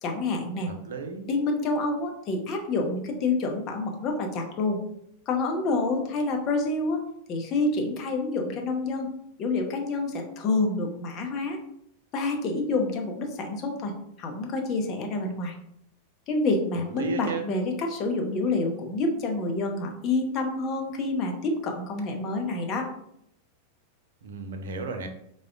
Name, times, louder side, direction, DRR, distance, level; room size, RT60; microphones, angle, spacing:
voice 1, 0.0-0.7 1.3-4.8 5.3-7.0 7.3-9.1 9.4-11.6 12.1-13.9 14.2-15.5 16.3-22.9, left 3 dB, 35° left, 2 dB, 0.6 m, -28 dB
voice 2, 0.7-1.3 16.9-17.4 24.2-25.1, right 4 dB, 60° right, 5 dB, 0.4 m, -34 dB
4.7 x 2.1 x 2.4 m, 0.73 s
figure-of-eight pair, 90°, 0 cm